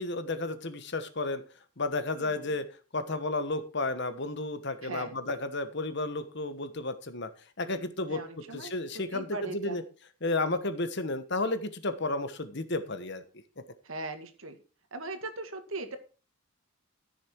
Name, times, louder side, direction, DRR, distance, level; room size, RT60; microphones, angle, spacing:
voice 1, 0.0-1.4 1.8-2.6 2.9-7.3 7.6-9.8 10.2-13.2, left 2 dB, 50° left, 11 dB, 1.2 m, -32 dB
voice 2, 8.1-8.7 9.1-9.8 13.9-14.5 14.9-16.0, right 2 dB, 65° right, 7 dB, 2.0 m, -38 dB
14.0 x 6.8 x 4.6 m, 0.34 s
head